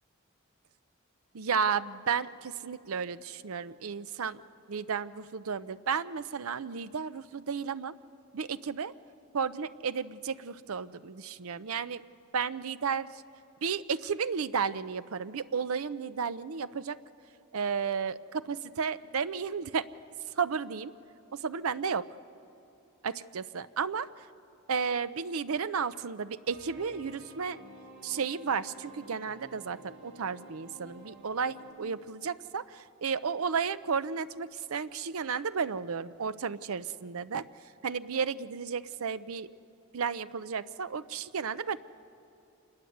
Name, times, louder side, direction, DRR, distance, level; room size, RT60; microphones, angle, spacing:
voice 1, 1.3-4.4 4.7-7.9 8.3-8.9 9.3-12.0 12.3-13.1 13.6-17.0 17.5-19.9 20.4-20.9 21.3-22.1 23.0-24.1 24.7-27.6 28.0-37.4 37.8-39.5 39.9-41.8, right 6 dB, 80° right, 14 dB, 0.6 m, -33 dB
sound 1, 26.5-31.7, right 1 dB, 65° right, 4.1 m, -51 dB
26.5 x 20.5 x 7.9 m, 2.8 s
head